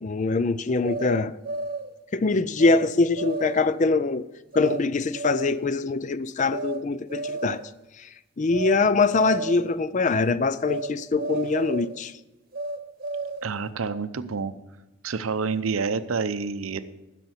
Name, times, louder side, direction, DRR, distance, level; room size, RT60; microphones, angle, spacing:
voice 1, 0.0-1.4 2.1-4.2 4.5-7.6 8.0-8.1 8.4-12.1, left 3 dB, 35° left, 0.4 m, -23 dB
sound 1, 0.8-1.9 2.6-2.9 3.2-3.8 4.5-4.8 5.1-5.7 6.5-6.8 7.1-7.7 8.5-8.8 9.1-9.7 10.6-10.9 11.2-12.0 12.5-13.6, right 3 dB, 45° right, 1.0 m, -32 dB
voice 2, 13.4-14.5 15.0-16.8, right 5 dB, 90° right, 0.7 m, -28 dB
10.5 x 6.8 x 7.9 m
head